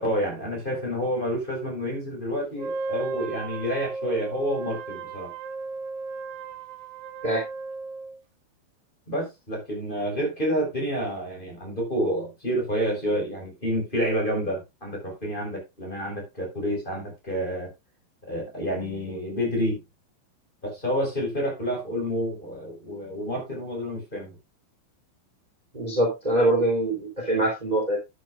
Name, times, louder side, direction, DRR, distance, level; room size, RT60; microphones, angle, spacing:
voice 1, 0.0-5.3 9.1-17.7 18.2-19.8 20.6-24.4, equal, 10° left, 0 dB, 4.3 m, -29 dB
Wind instrument woodwind instrument, 2.6-8.2, right 4 dB, 90° right, 2.0 m, -35 dB
voice 2, 25.7-28.0, right 1 dB, 10° right, 0 dB, 2.0 m, -23 dB
11.5 x 9.9 x 2.5 m, 0.22 s
omnidirectional pair, 5.9 m